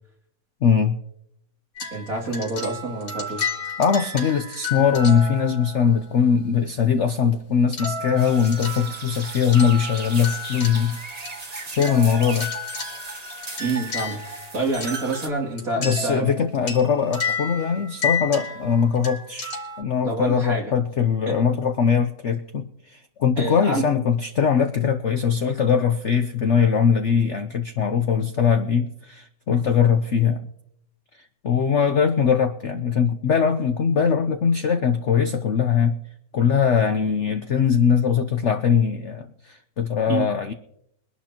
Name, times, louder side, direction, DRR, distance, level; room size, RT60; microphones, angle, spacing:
voice 1, 0.6-1.0 3.8-11.0 11.7-12.5 15.8-30.4 31.4-36.0 36.3-40.5, left 7 dB, 55° left, 7 dB, 0.8 m, -21 dB
sound 1, 1.8-6.1 7.7-11.4 11.8-19.8, left 4 dB, 85° left, 3.5 m, -32 dB
voice 2, 1.9-3.5 13.6-16.3 20.0-20.7 21.3-21.4 23.4-23.8 40.1-40.3, right 2 dB, 45° right, -3 dB, 3.1 m, -27 dB
sound 2, 8.2-15.3, right 3 dB, 25° right, 1.1 m, -36 dB
23.0 x 11.5 x 2.9 m, 0.75 s
omnidirectional pair, 2.0 m